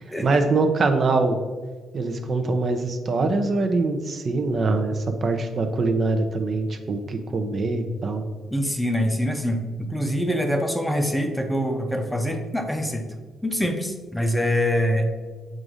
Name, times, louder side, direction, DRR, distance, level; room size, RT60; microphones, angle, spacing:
voice 1, 0.2-1.4 1.9-8.3, right 3 dB, 45° right, 6 dB, 0.6 m, -23 dB
voice 2, 8.5-13.1 13.4-15.1, equal, 5° left, 4 dB, 0.7 m, -24 dB
7.5 x 2.6 x 4.8 m, 1.4 s
cardioid pair, 90°, 0 cm